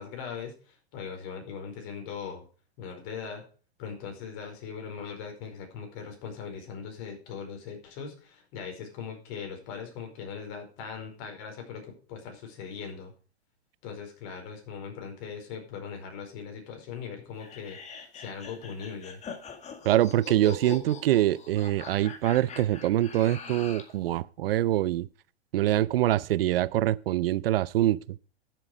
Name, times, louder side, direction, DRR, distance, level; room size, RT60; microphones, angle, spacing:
voice 1, 0.0-2.4 2.8-3.4 3.8-13.1 13.8-19.2, left 6 dB, 45° left, 4.9 m, -40 dB
sound 1, 17.4-24.0, left 5 dB, 20° left, 1.9 m, -43 dB
voice 2, 19.8-25.1 25.5-28.0, right 14 dB, 60° right, 0.6 m, -24 dB
12.5 x 7.7 x 5.0 m
hypercardioid pair, 120°, 32 cm